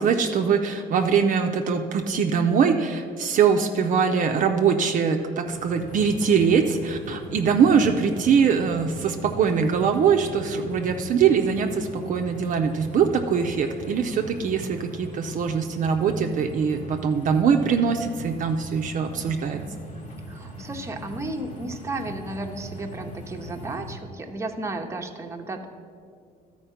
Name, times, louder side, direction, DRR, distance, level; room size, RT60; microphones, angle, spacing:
voice 1, 0.0-19.6, right 6 dB, 50° right, 4 dB, 0.6 m, -22 dB
sound 1, 5.5-24.0, right 1 dB, 50° left, 1.3 m, -40 dB
voice 2, 20.3-25.7, right 2 dB, 15° right, 3 dB, 0.8 m, -33 dB
12.5 x 4.5 x 5.7 m, 2.3 s
cardioid pair, 110°, 17 cm